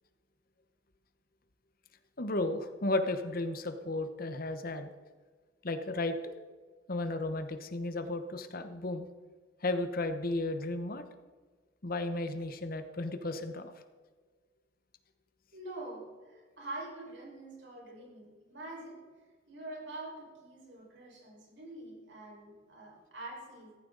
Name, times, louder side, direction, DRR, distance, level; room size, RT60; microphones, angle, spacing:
voice 1, 2.2-4.9 5.6-6.3 6.9-9.1 9.6-11.0 11.8-13.7, left 2 dB, 50° left, 8 dB, 1.1 m, -34 dB
voice 2, 15.5-19.0 19.5-23.8, right 2 dB, 70° right, -2 dB, 5.3 m, -45 dB
15.0 x 14.0 x 4.0 m, 1.5 s
head